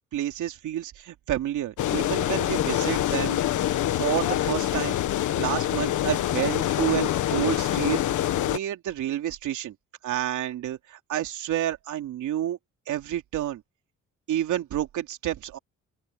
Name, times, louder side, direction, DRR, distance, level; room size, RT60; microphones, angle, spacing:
voice 1, 0.1-3.7 4.0-5.0 5.4-9.7 10.0-12.6 12.9-13.6 14.3-15.6, right 12 dB, 80° right, 3.1 m, -29 dB
sound 1, 1.8-8.6, left 12 dB, 75° left, 1.6 m, -25 dB
open air
cardioid pair, 90°, 30 cm